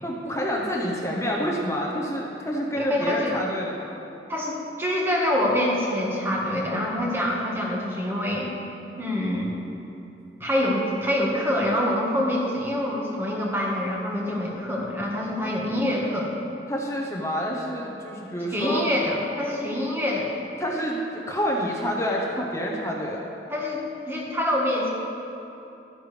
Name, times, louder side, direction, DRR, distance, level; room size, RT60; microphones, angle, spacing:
voice 1, 0.0-3.9 15.4-15.5 16.7-18.8 20.6-23.3, equal, 15° left, -2 dB, 0.9 m, -28 dB
voice 2, 2.8-3.4 4.3-8.5 9.0-9.5 10.4-16.3 18.5-20.3 23.5-24.9, left 1 dB, 15° right, -2 dB, 1.4 m, -26 dB
13.0 x 10.0 x 3.3 m, 3.0 s
head